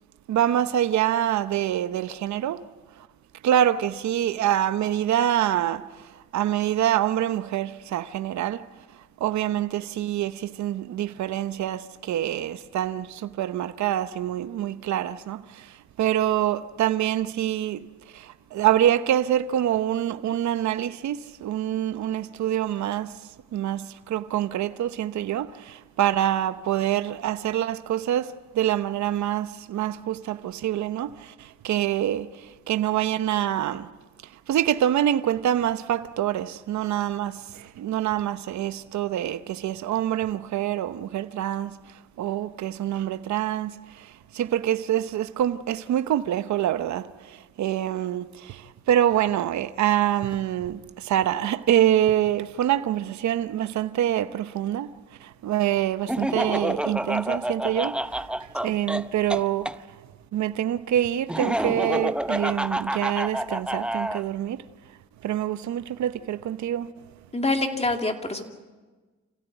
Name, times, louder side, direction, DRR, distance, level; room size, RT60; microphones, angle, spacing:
voice 1, 0.3-2.6 3.4-5.8 6.3-8.6 9.2-15.4 16.0-17.8 18.1-18.3 18.5-23.1 23.5-31.3 31.6-32.3 32.7-33.9 34.5-41.8 42.2-43.7 44.3-47.1 47.6-48.6 48.9-54.9 55.4-57.9 58.6-59.7 60.3-64.6 65.2-66.9, right 11 dB, 70° right, 0.9 m, -25 dB
Laughter, 56.1-59.8 61.3-64.2, right 1 dB, 5° right, 0.7 m, -28 dB
voice 2, 67.3-68.4, left 2 dB, 20° left, 2.6 m, -25 dB
27.0 x 16.0 x 9.2 m
cardioid pair, 90°, 30 cm